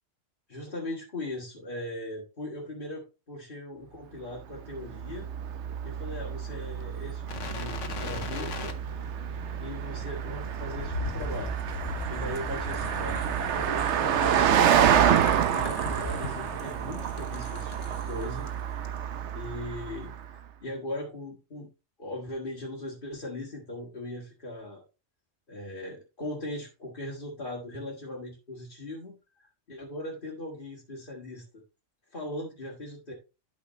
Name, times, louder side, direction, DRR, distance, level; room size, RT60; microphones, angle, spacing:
voice 1, 0.5-5.3 5.8-8.7 9.6-11.5 12.1-18.5 19.3-21.7 22.0-24.8 25.5-31.4 32.1-33.1, left 1 dB, 45° left, -4 dB, 2.0 m, -39 dB
Car passing by, 4.5-20.3, right 9 dB, 75° right, 0.9 m, -28 dB
sound 1, 7.3-18.5 18.8-19.0, left 3 dB, 80° left, 1.4 m, -39 dB
12.0 x 5.2 x 3.2 m, 0.30 s
omnidirectional pair, 1.2 m